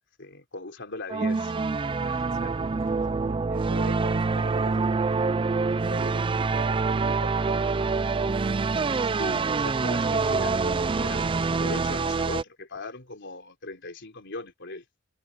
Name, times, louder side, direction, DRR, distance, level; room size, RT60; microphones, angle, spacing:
voice 1, 0.2-1.6 2.0-2.5 9.0-11.3 11.6-14.8, left 2 dB, 60° left, 3.8 m, -39 dB
sound 1, 1.1-12.4, right 4 dB, 25° right, 0.4 m, -26 dB
voice 2, 2.3-7.8, right 2 dB, 65° right, 2.8 m, -41 dB
head